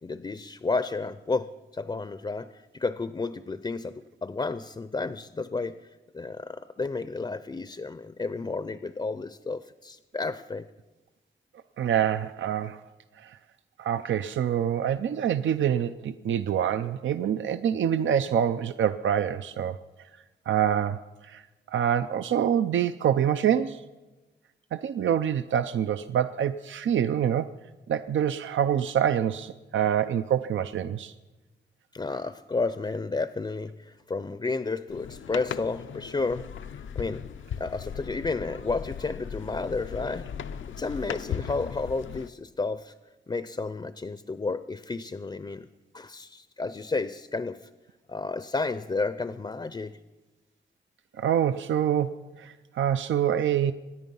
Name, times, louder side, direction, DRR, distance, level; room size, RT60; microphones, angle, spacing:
voice 1, 0.0-5.9 6.1-10.7 31.9-36.5 37.0-37.3 37.6-40.3 40.8-42.9 43.3-45.7 45.9-47.7 48.1-50.0, left 3 dB, 25° left, 13 dB, 0.5 m, -32 dB
voice 2, 11.8-12.8 13.2-13.4 13.8-19.8 20.5-21.4 21.7-23.8 24.7-27.5 27.9-31.1 51.2-53.7, right 9 dB, 80° right, 11 dB, 0.5 m, -26 dB
sound 1, 34.9-42.3, left 8 dB, 85° left, 0.6 m, -37 dB
26.0 x 10.5 x 5.4 m, 1.2 s
wide cardioid pair, 105°, 20 cm